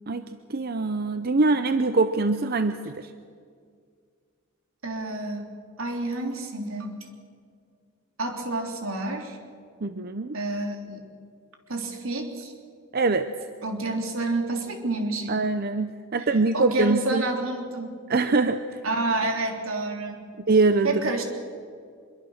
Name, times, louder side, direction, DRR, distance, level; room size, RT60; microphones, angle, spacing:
voice 1, 0.1-3.1 9.8-10.4 12.9-13.3 15.3-17.2 18.1-18.8 20.5-21.0, right 3 dB, 45° right, 10 dB, 0.7 m, -23 dB
voice 2, 4.8-5.5 5.8-6.9 8.2-9.4 10.3-11.0 11.7-12.5 13.6-15.4 16.2-18.0 18.8-20.3 20.8-21.2, right 2 dB, 80° right, 3 dB, 3.4 m, -29 dB
25.0 x 23.0 x 6.5 m, 2.2 s
head